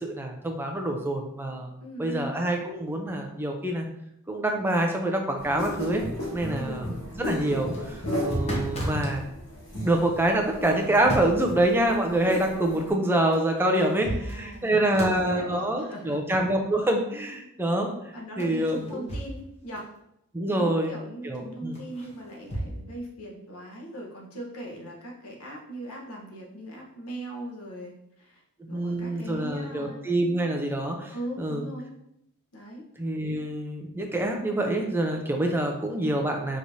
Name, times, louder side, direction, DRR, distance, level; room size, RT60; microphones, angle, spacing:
voice 1, 0.0-1.7 2.0-3.9 4.3-6.0 6.3-6.9 7.2-9.3 9.8-17.9 18.4-19.1 20.3-20.9 21.2-21.8 28.6-31.6 33.0-36.6, right 1 dB, 10° right, 2 dB, 0.5 m, -26 dB
voice 2, 1.8-2.3 6.5-6.9 14.0-16.2 18.1-19.9 20.5-27.9 28.2-28.4 28.7-30.1 31.1-31.9 32.5-32.8, right 1 dB, 85° left, -1 dB, 1.1 m, -39 dB
sound 1, 5.4-12.9, left 1 dB, 65° left, 1.6 m, -35 dB
sound 2, 7.7-9.2 10.7-11.5 13.3-13.4 13.8-14.7 14.9-15.3 18.4-19.5 19.8-19.9 21.7-22.7, right 1 dB, 30° left, 0.9 m, -33 dB
5.1 x 3.1 x 2.7 m, 0.79 s
head